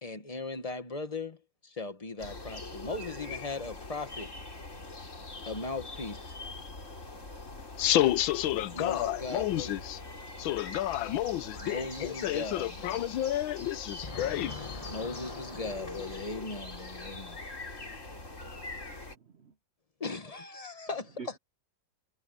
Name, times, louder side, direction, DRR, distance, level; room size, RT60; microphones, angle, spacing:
voice 1, 0.0-4.3 5.5-6.4 8.7-9.8 11.5-13.0 14.0-17.4 20.0-21.4, left 3 dB, 20° left, 1.2 m, -38 dB
sound 1, 2.2-19.2, left 2 dB, 40° left, 4.0 m, -43 dB
voice 2, 7.8-10.0 10.4-14.6, left 13 dB, 90° left, 1.5 m, -30 dB
voice 3, 17.9-19.5 21.2-21.4, right 5 dB, 50° right, 0.8 m, -50 dB
omnidirectional pair, 2.1 m